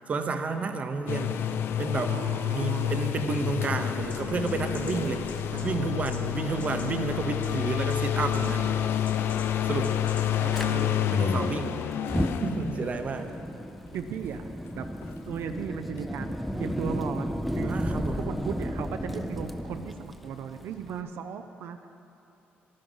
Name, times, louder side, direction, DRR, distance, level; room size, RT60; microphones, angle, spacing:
voice 1, 0.1-1.4 1.8-2.2 2.5-5.3 5.6-8.7 9.6-10.0 11.1-11.8 12.4-13.3 17.6-18.2, right 4 dB, 35° right, 7 dB, 0.8 m, -31 dB
sound 1, 1.1-13.4 15.0-15.1, left 10 dB, 70° left, 0.5 m, -29 dB
voice 2, 2.1-3.0 4.9-5.9 10.4-11.1 12.6-12.8 13.9-14.5 14.7-14.9 15.3-21.9, right 8 dB, 75° right, 7 dB, 0.5 m, -37 dB
sound 2, 4.0-10.8, left 3 dB, 35° left, 1.3 m, -44 dB
Fire, 10.5-10.7 11.9-21.0, equal, ahead, 0.5 m, -33 dB
12.0 x 12.0 x 5.5 m, 2.8 s
cardioid pair, 140°, 4 cm